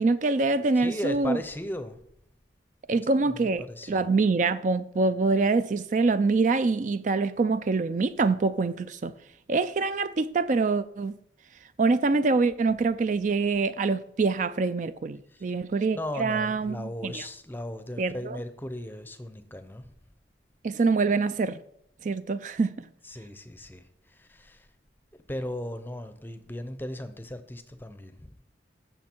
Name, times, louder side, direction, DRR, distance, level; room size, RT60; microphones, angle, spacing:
voice 1, 0.0-1.4 2.9-9.1 9.5-11.1 11.8-17.3 18.0-18.4 20.6-21.6 22.0-22.8, right 3 dB, 40° right, 0.4 m, -25 dB
voice 2, 0.8-2.0 3.2-4.1 15.3-15.5 15.9-19.9 23.0-24.7 25.3-28.4, left 1 dB, 10° left, 0.6 m, -37 dB
14.5 x 6.4 x 4.4 m
head